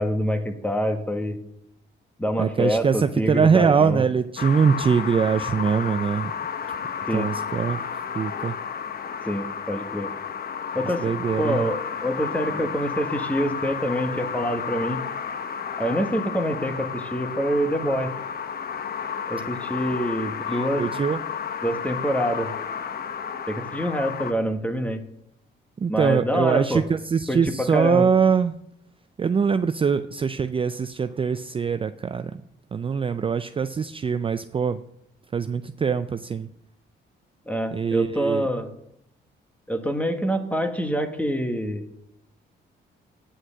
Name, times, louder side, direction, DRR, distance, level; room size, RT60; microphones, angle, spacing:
voice 1, 0.0-1.4 2.2-4.0 7.1-7.3 9.2-10.1 10.7-11.1 11.4-15.0 15.8-18.1 19.3-20.8 21.6-22.5 23.5-25.0 25.9-26.8 27.3-28.1 37.5-38.7 39.7-41.8, equal, 5° left, 6 dB, 1.5 m, -26 dB
voice 2, 2.4-6.3 7.1-7.8 8.1-8.6 10.8-11.7 20.5-21.2 25.8-28.6 29.2-32.4 32.7-34.8 35.3-36.5 37.7-38.5, right 6 dB, 25° right, 10 dB, 0.4 m, -23 dB
sound 1, 4.4-24.3, left 7 dB, 50° left, 0.8 m, -32 dB
9.6 x 6.4 x 7.6 m, 0.75 s
cardioid pair, 90°, 20 cm